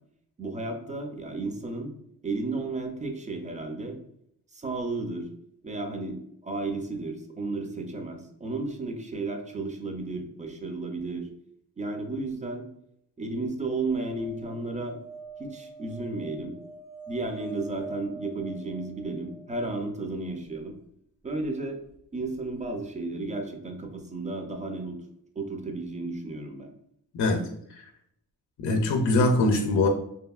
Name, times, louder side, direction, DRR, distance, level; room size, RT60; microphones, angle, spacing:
voice 1, 0.4-1.9 2.2-4.0 4.5-5.3 5.6-6.2 6.4-11.3 11.8-12.7 13.2-15.0 15.4-16.6 17.1-20.7 21.2-21.8 22.1-25.0 25.4-26.7, right 3 dB, 20° right, 4 dB, 0.4 m, -33 dB
sound 1, 13.9-20.1 22.3-22.4 22.6-22.7, right 2 dB, 55° right, 0.9 m, -45 dB
voice 2, 27.1-27.8 28.6-29.9, left 2 dB, 50° left, 3 dB, 0.5 m, -23 dB
2.7 x 2.6 x 2.3 m, 0.72 s
cardioid pair, 110°, 39 cm